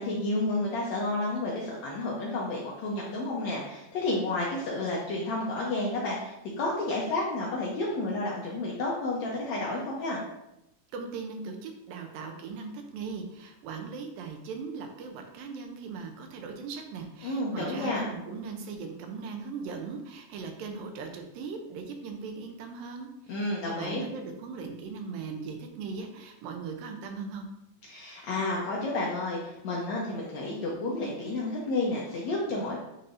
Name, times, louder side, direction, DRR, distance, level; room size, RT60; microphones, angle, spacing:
voice 1, 0.0-10.2 17.2-18.1 23.3-24.0 27.9-32.8, left 2 dB, 70° left, -4 dB, 1.7 m, -31 dB
voice 2, 10.9-27.5, right 5 dB, 80° right, 4 dB, 2.3 m, -39 dB
9.6 x 4.0 x 2.6 m, 0.87 s
omnidirectional pair, 4.1 m